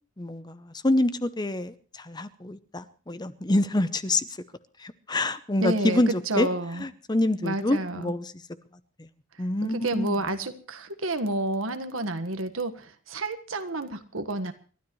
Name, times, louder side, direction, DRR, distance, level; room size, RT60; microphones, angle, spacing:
voice 1, 0.2-4.3 4.8-6.5 6.8-8.3 9.0-9.1 9.4-10.1, left 1 dB, 20° left, 0.8 m, -26 dB
voice 2, 5.6-6.8 7.4-8.1 9.6-14.5, right 2 dB, 85° right, 1.5 m, -30 dB
29.0 x 12.5 x 3.2 m
head